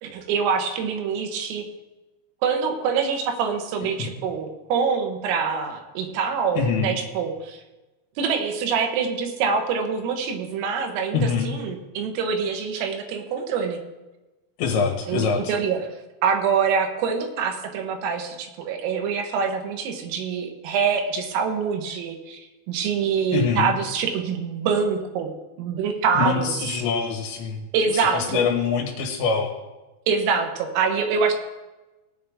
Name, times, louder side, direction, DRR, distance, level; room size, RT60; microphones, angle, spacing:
voice 1, 0.0-1.7 2.4-7.6 8.2-13.8 15.1-15.9 16.2-25.3 25.6-26.7 27.7-28.4 30.1-31.3, right 6 dB, 85° right, 4 dB, 3.9 m, -25 dB
voice 2, 6.6-7.0 11.1-11.5 14.6-15.5 23.3-23.7 26.1-27.6 27.9-29.5, left 5 dB, 70° left, 1 dB, 3.3 m, -24 dB
18.5 x 9.4 x 3.6 m, 1.1 s
omnidirectional pair, 6.0 m